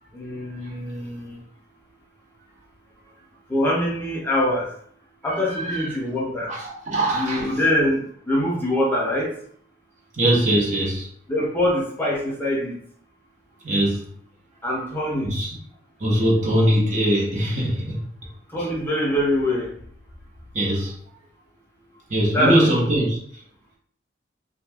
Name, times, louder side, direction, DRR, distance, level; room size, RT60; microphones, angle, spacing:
voice 1, 0.1-1.4 3.5-4.7 5.2-6.5 7.1-9.3 11.3-12.8 14.6-15.3 18.5-19.7 22.3-22.9, left 1 dB, 10° left, -5 dB, 0.6 m, -24 dB
voice 2, 5.5-5.9 6.5-7.5 10.2-11.1 13.6-14.1 15.2-15.6 16.0-18.0 20.5-20.9 22.1-23.2, right 1 dB, 40° right, -4 dB, 0.9 m, -21 dB
2.7 x 2.4 x 3.4 m, 0.62 s
head